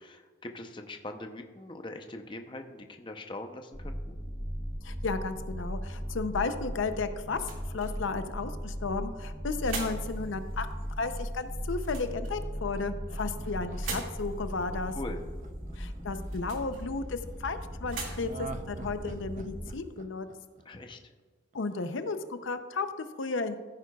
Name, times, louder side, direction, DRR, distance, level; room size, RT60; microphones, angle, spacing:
voice 1, 0.0-4.2 14.9-15.2 20.6-21.0, left 2 dB, 25° left, 5 dB, 0.6 m, -42 dB
sound 1, 3.7-19.7, equal, ahead, 0.8 m, -38 dB
voice 2, 4.8-14.9 15.8-20.3 21.5-23.6, left 4 dB, 70° left, 9 dB, 0.6 m, -34 dB
sound 2, 7.1-20.0, right 4 dB, 85° right, 2.1 m, -46 dB
Laughter, 12.4-16.6 18.2-21.2 21.5-21.6, right 3 dB, 40° right, 0.5 m, -46 dB
15.0 x 9.4 x 2.3 m, 1.4 s
head